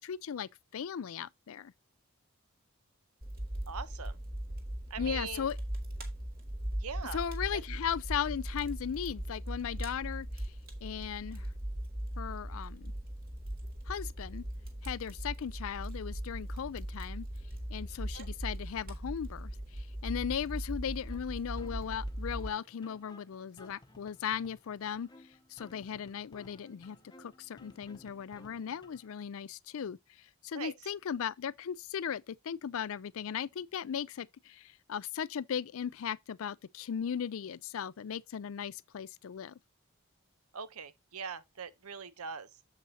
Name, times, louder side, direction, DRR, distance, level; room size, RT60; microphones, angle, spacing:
voice 1, 0.0-1.7 5.0-5.6 7.1-10.5 10.8-11.5 12.2-12.9 13.9-14.5 14.8-17.3 17.7-25.1 25.5-30.0 30.4-39.6, left 8 dB, 70° left, 0.4 m, -37 dB
Fire, 3.2-22.5, right 1 dB, 40° right, 1.9 m, -39 dB
voice 2, 3.7-4.2 4.9-5.5 6.8-7.2 7.5-7.6 18.1-18.3 30.5-30.9 40.5-42.5, right 6 dB, 80° right, 0.9 m, -41 dB
sound 1, 21.1-29.1, left 1 dB, 20° left, 0.8 m, -58 dB
8.3 x 7.4 x 2.8 m
head